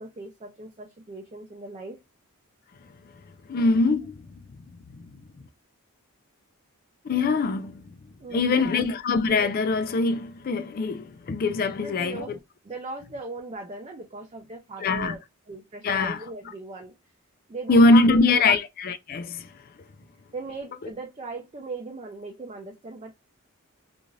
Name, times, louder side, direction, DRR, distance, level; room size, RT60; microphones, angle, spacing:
voice 1, 0.0-2.0 8.2-8.9 11.8-12.4 12.6-15.2 15.5-16.9 17.5-18.5 20.3-23.1, right 3 dB, 25° right, 0.4 m, -38 dB
voice 2, 3.5-4.2 7.0-7.8 8.3-12.4 14.8-15.1 15.8-16.2 17.7-19.5, left 3 dB, 40° left, 0.3 m, -22 dB
2.5 x 2.4 x 3.0 m
head